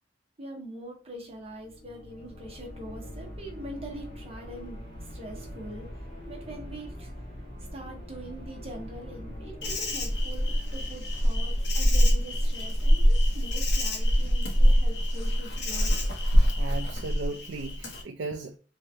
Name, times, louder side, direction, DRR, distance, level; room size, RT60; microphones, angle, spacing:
voice 1, 0.4-7.1 7.7-15.9, right 1 dB, 35° right, 0.9 m, -43 dB
sound 1, 1.3-16.2, equal, 30° left, 1.2 m, -44 dB
Insect, 9.6-18.0, equal, 70° left, 0.8 m, -24 dB
voice 2, 16.6-18.6, right 3 dB, 80° right, 0.4 m, -36 dB
3.3 x 2.8 x 2.6 m
head